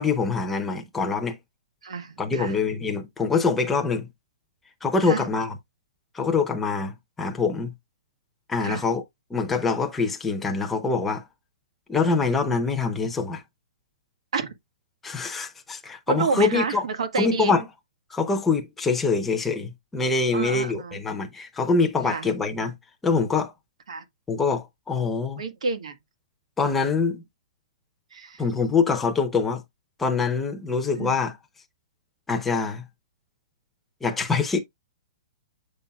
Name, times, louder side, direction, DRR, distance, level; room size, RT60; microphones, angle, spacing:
voice 1, 0.0-1.4 2.2-4.1 4.8-5.6 6.1-7.7 8.5-9.0 9.3-11.2 11.9-13.4 15.0-16.8 17.2-17.6 18.1-22.7 23.0-23.5 24.3-25.4 26.6-27.2 28.4-29.6 30.0-31.3 32.3-32.8 34.0-34.6, left 4 dB, 5° left, 0.7 m, -24 dB
voice 2, 1.8-2.6 5.0-5.2 8.6-8.9 14.3-14.5 16.1-17.5 20.3-21.0 22.0-22.3 23.9-24.0 25.4-26.0 28.1-28.4 31.0-31.2, right 4 dB, 90° right, 1.6 m, -29 dB
7.9 x 5.5 x 2.3 m
hypercardioid pair, 175°, 3 cm